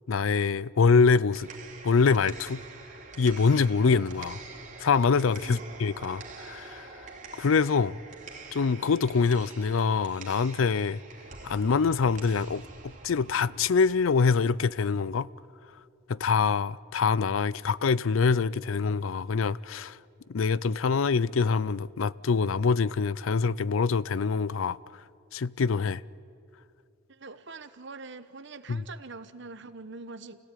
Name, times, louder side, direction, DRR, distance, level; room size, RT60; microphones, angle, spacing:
voice 1, 0.1-1.5 1.8-2.6 3.2-4.4 4.8-6.9 7.3-8.0 8.5-11.0 11.4-15.3 16.1-20.0 20.3-24.8 25.3-26.0 28.7-28.8, left 5 dB, 85° left, 0.5 m, -25 dB
sound 1, 1.1-15.1, right 4 dB, 40° right, 3.0 m, -47 dB
voice 2, 27.1-30.4, right 3 dB, 60° right, 1.1 m, -44 dB
29.0 x 17.0 x 9.1 m
head